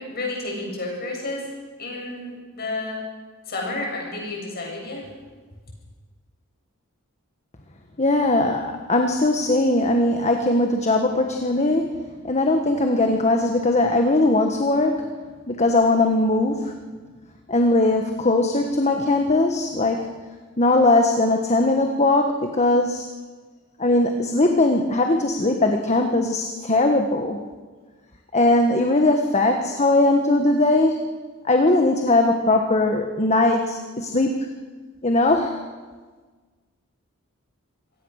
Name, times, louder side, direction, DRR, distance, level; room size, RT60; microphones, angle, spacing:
voice 1, 0.0-1.5 1.8-3.0 3.5-5.0, left 2 dB, 50° left, -1 dB, 7.9 m, -31 dB
voice 2, 8.0-12.0 12.2-15.1 15.5-16.7 17.5-20.1 20.6-23.1 23.8-27.4 28.3-31.0 31.5-34.5 35.0-35.6, left 2 dB, 35° left, 4 dB, 1.5 m, -20 dB
26.5 x 17.5 x 6.6 m, 1.4 s
head